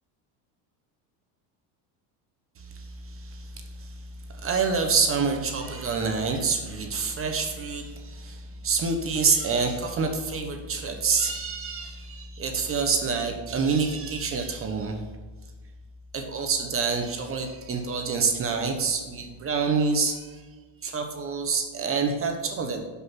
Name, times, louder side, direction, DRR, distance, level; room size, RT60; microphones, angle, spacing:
voice 1, 2.6-4.0 4.3-15.0 16.1-20.4 20.8-22.9, right 5 dB, 25° right, 5 dB, 1.0 m, -27 dB
11.5 x 5.8 x 5.8 m, 1.4 s
cardioid pair, 145°, 48 cm